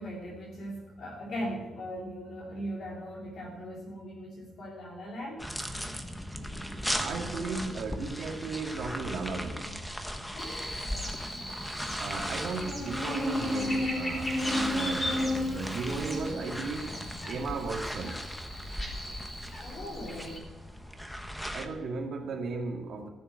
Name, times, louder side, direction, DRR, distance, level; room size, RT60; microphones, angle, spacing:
voice 1, 0.0-5.5 10.3-10.6 19.6-20.5, equal, 50° left, -4 dB, 2.9 m, -39 dB
sound 1, 5.4-21.7, equal, 5° left, 0.9 m, -38 dB
voice 2, 6.9-9.9 12.0-16.9 17.2-18.2 21.5-23.1, right 4 dB, 55° right, 2 dB, 2.1 m, -36 dB
Buzz, 10.4-20.4, left 1 dB, 20° left, 3.8 m, -35 dB
15.0 x 6.9 x 8.3 m, 1.1 s
cardioid pair, 160°, 0 cm